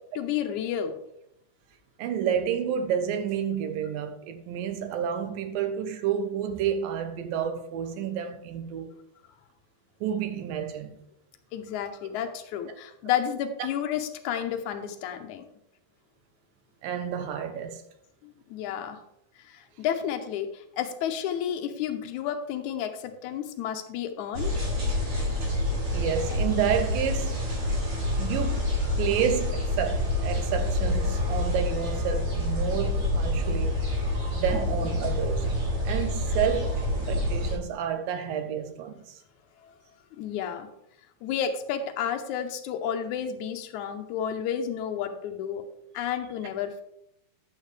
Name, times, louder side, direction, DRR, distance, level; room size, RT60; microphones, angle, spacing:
voice 1, 0.1-1.0 11.5-15.4 18.2-19.0 19.4-24.6 39.6-39.7 40.2-40.7 41.2-45.6 45.9-46.8, left 9 dB, 80° left, 1.7 m, -31 dB
voice 2, 2.0-8.9 10.0-11.0 16.8-17.8 25.9-27.4 28.2-28.7 29.0-33.8 34.3-35.5 35.8-39.2, right 8 dB, 75° right, 2.4 m, -30 dB
sound 1, 24.3-37.6, left 1 dB, 55° right, 5.3 m, -27 dB
11.0 x 8.2 x 3.3 m
omnidirectional pair, 4.4 m